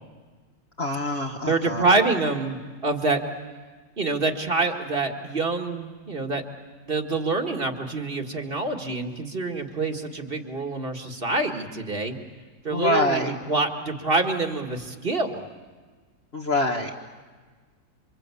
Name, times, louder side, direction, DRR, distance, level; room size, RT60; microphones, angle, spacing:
voice 1, 0.8-1.9 12.7-13.3 16.3-16.9, left 1 dB, 40° left, 0 dB, 1.7 m, -25 dB
voice 2, 1.5-2.6 2.8-3.2 4.0-6.4 6.9-12.2 12.6-15.4, right 3 dB, 35° right, 5 dB, 1.9 m, -26 dB
28.5 x 25.0 x 8.4 m, 1.4 s
omnidirectional pair, 1.8 m